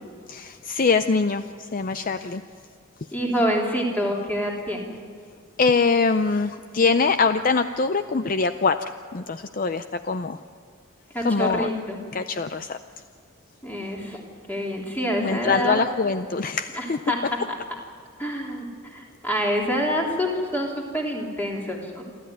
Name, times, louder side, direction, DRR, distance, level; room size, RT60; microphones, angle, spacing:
voice 1, 0.3-2.4 5.6-10.4 11.2-11.7 12.1-12.8 15.2-17.0, left 4 dB, 40° left, 10 dB, 0.5 m, -23 dB
voice 2, 3.1-4.9 11.1-12.0 13.6-14.2 14.5-15.8 16.7-17.2 17.5-17.6 18.2-22.1, equal, 10° left, -1 dB, 3.3 m, -27 dB
28.5 x 13.0 x 9.4 m, 2.1 s
head